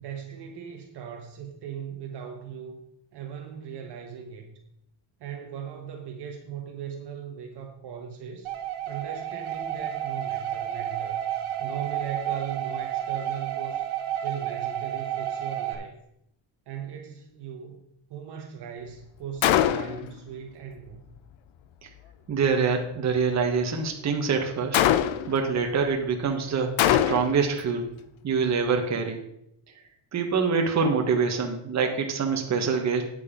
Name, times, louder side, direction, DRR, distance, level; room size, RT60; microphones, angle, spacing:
voice 1, 0.0-2.8 3.1-4.6 5.2-8.5 8.9-11.2 11.6-13.8 14.2-16.0 16.7-17.8 18.1-21.0, right 8 dB, 55° right, 1.1 m, -38 dB
sound 1, 8.4-15.7, right 11 dB, 80° right, 1.6 m, -31 dB
Gunshot gunfire, 19.4-20.1 24.7-25.4 26.8-27.5, left 11 dB, 70° left, 0.7 m, -22 dB
voice 2, 22.3-24.8 25.3-27.9 28.2-29.2 30.1-33.0, right 5 dB, 35° right, 1.3 m, -25 dB
9.0 x 6.7 x 5.1 m
cardioid pair, 165°, 48 cm